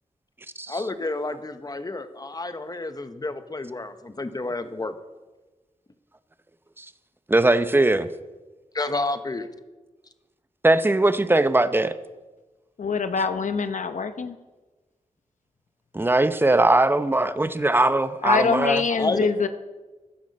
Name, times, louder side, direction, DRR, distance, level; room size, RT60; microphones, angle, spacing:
voice 1, 0.7-4.9 8.7-9.5 18.9-19.3, left 2 dB, 30° left, 1.0 m, -29 dB
voice 2, 7.3-8.1 10.6-12.0 15.9-18.8, right 2 dB, 15° right, 0.7 m, -20 dB
voice 3, 12.8-14.4 18.2-19.5, left 5 dB, 75° left, 0.8 m, -24 dB
15.0 x 12.0 x 5.4 m
wide cardioid pair, 95°, 13 cm